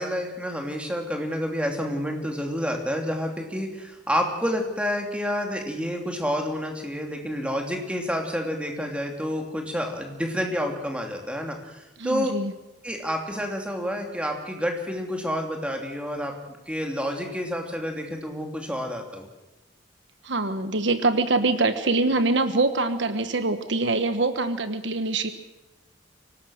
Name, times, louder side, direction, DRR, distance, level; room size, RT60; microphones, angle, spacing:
voice 1, 0.0-12.3 12.8-19.3, equal, 5° right, 2 dB, 2.8 m, -29 dB
voice 2, 12.0-12.5 20.2-25.3, right 3 dB, 65° right, 10 dB, 1.2 m, -24 dB
25.0 x 18.5 x 6.5 m, 0.98 s
head